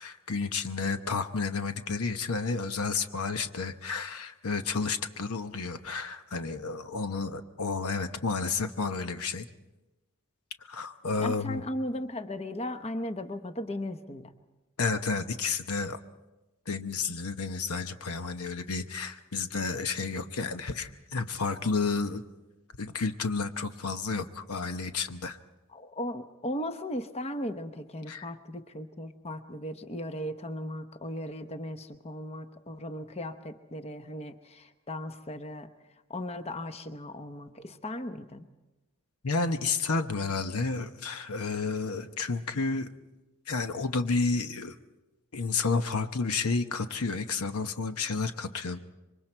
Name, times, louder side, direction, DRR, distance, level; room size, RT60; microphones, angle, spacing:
voice 1, 0.0-9.4 10.6-11.6 14.8-16.0 16.7-22.2 22.8-25.4 28.1-28.3 39.2-42.9 43.5-44.7 45.3-48.8, left 4 dB, 75° left, 9 dB, 0.9 m, -31 dB
voice 2, 11.2-14.3 25.7-35.7 36.1-38.5, left 1 dB, 30° left, 8 dB, 0.9 m, -37 dB
26.5 x 24.0 x 4.5 m, 1.1 s
head